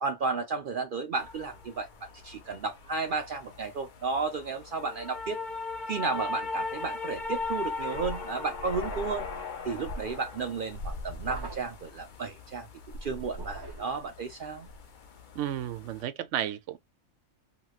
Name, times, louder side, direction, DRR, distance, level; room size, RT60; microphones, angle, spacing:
voice 1, 0.0-5.4 5.9-9.3 9.6-12.7 13.0-14.7, right 4 dB, 55° right, 0.6 m, -33 dB
sound 1, 1.2-16.0, left 3 dB, 50° left, 0.7 m, -38 dB
sound 2, 6.1-6.6 8.6-9.3 11.2-11.9 13.3-14.0, right 2 dB, 25° right, 0.8 m, -44 dB
voice 2, 15.3-16.8, right 11 dB, 80° right, 0.9 m, -32 dB
3.0 x 2.8 x 2.3 m
omnidirectional pair, 1.2 m